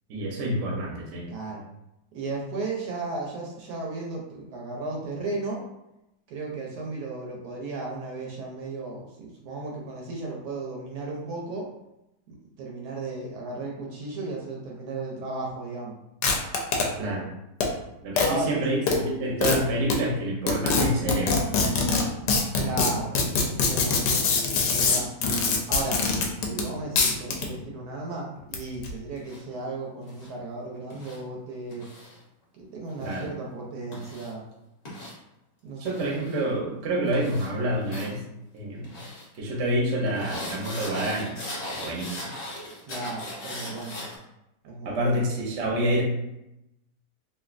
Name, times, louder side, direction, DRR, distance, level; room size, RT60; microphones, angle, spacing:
voice 1, 0.1-1.3 17.0-17.3 18.0-21.3 33.0-33.3 35.8-38.2 38.5-38.9 39.4-41.3 41.7-42.2 44.8-46.0, right 1 dB, 55° right, -2 dB, 0.9 m, -27 dB
voice 2, 1.3-1.6 2.1-5.6 6.3-11.7 12.3-16.0 18.2-18.6 22.6-23.2 23.5-24.1 24.7-25.1 25.7-26.0 26.5-31.9 32.5-34.4 35.6-36.1 42.9-44.0 44.7-45.5, right 3 dB, 75° right, -2 dB, 1.1 m, -35 dB
sound 1, 16.2-16.8 17.6-17.7 18.2-18.3 18.9-19.0 19.4-19.6 19.9-20.0 20.5-26.7 27.0-27.5 28.4-28.9, left 4 dB, 80° left, 1.2 m, -23 dB
sound 2, 29.2-29.4 30.1-30.3 30.9-31.2 31.7-32.2 32.9-33.2 33.9-34.3 34.9-35.1 35.9-36.4 37.1-37.5 37.8-38.1 38.8-39.3 40.1-44.2, left 1 dB, 50° left, 0.5 m, -38 dB
3.1 x 2.6 x 2.4 m, 0.88 s
omnidirectional pair, 1.8 m